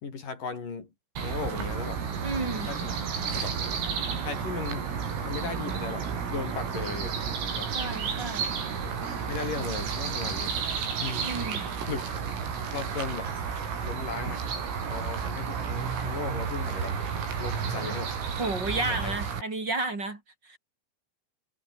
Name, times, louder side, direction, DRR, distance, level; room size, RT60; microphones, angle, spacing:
voice 1, 0.0-0.9 1.2-2.0 2.7-3.0 3.3-3.6 4.2-4.9 5.2-7.2 7.6-7.7 8.8-10.6 11.0-11.3 11.9-12.2 12.7-13.3 13.8-17.0 17.4-18.2 18.8-19.1, left 5 dB, 45° left, 5.6 m, -37 dB
sound 1, 1.2-19.4, right 6 dB, 90° right, 8.6 m, -32 dB
voice 2, 2.2-2.7 7.7-8.5 11.2-11.7 18.4-20.6, right 2 dB, 25° right, 4.0 m, -32 dB
omnidirectional pair, 5.8 m